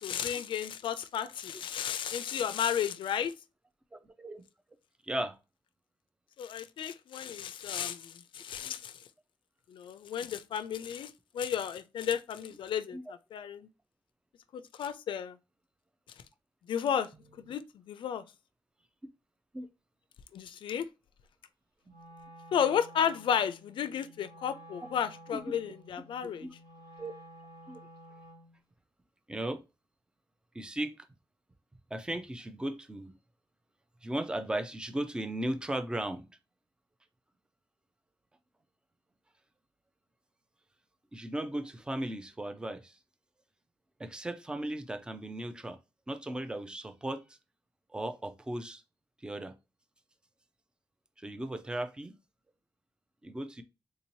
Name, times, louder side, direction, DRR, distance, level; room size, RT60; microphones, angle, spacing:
voice 1, 0.0-3.3 6.4-8.9 9.7-13.7 14.5-15.4 16.7-17.1 17.5-17.6 17.9-18.2 20.3-20.9 22.5-26.5, left 8 dB, 80° left, 0.4 m, -33 dB
voice 2, 4.0-4.4 5.0-5.4 8.6-8.7 12.9-13.0 17.1-17.5 19.5-19.7 25.3-25.6 26.2-26.5 27.0-27.1 27.7-27.8 29.3-29.6 30.5-31.1 31.9-33.1 34.0-36.2 41.1-43.0 44.0-45.8 46.1-47.2 47.9-48.8 49.2-49.5 51.2-52.2 53.2-53.6, right 1 dB, 10° right, 0.4 m, -36 dB
Wind instrument woodwind instrument, 21.8-28.6, right 1 dB, 75° right, 1.9 m, -52 dB
3.6 x 2.7 x 2.9 m
wide cardioid pair, 170°, 8 cm